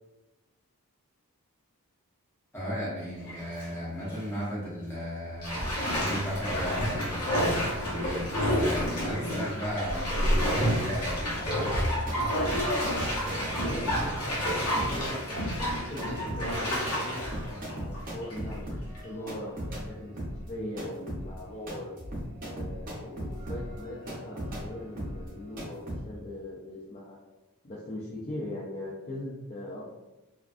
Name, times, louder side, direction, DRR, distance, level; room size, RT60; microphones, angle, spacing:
voice 1, 2.5-11.8, equal, 10° left, -8 dB, 0.9 m, -35 dB
Bathtub (filling or washing), 3.2-3.7 4.1-4.2 5.4-18.5 19.0-19.1, equal, 80° left, 0.8 m, -29 dB
sound 1, 11.8-19.9 20.2-26.0, equal, 40° right, 0.6 m, -38 dB
voice 2, 13.5-20.2 20.5-21.9 22.4-27.2 27.6-29.9, left 1 dB, 30° left, -6 dB, 0.3 m, -40 dB
2.4 x 2.2 x 2.4 m, 1.0 s
head